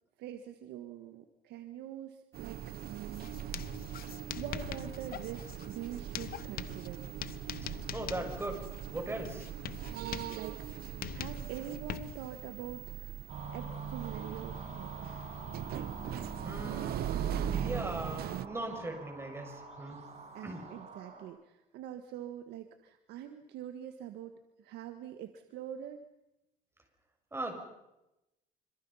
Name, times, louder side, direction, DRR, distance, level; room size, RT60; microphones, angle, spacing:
voice 1, 0.2-3.3 4.0-7.0 9.9-13.2 13.5-15.1 20.3-26.0, right 10 dB, 85° right, 7 dB, 1.6 m, -44 dB
sound 1, 2.3-18.5, right 10 dB, 65° right, 0.9 m, -40 dB
Writing, 3.1-12.4, left 12 dB, 60° left, 1.0 m, -44 dB
voice 2, 7.9-8.6 8.9-9.5 16.4-20.0 20.4-20.6 27.3-27.5, right 2 dB, 15° right, 4 dB, 6.6 m, -39 dB
sound 2, 13.3-21.2, right 4 dB, 40° right, 6.6 m, -44 dB
26.5 x 26.5 x 5.7 m, 0.92 s
cardioid pair, 110°, 17 cm